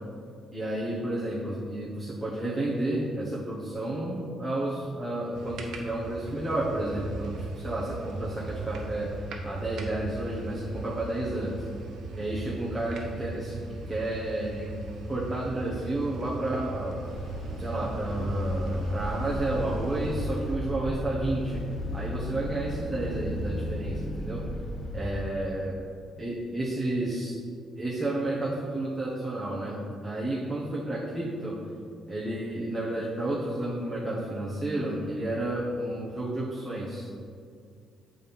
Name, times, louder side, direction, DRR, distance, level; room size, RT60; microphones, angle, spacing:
voice 1, 0.5-9.1 9.4-11.6 12.1-13.5 13.9-17.0 17.6-21.6 21.9-24.4 24.9-25.8 26.2-27.4 27.8-31.5 32.1-37.1, right 1 dB, 5° right, -7 dB, 1.1 m, -31 dB
sound 1, 5.3-20.3, right 3 dB, 75° right, 0.9 m, -39 dB
sound 2, 17.0-25.1, equal, 55° left, 1.5 m, -34 dB
7.6 x 4.3 x 5.4 m, 2.3 s
cardioid pair, 115°, 0 cm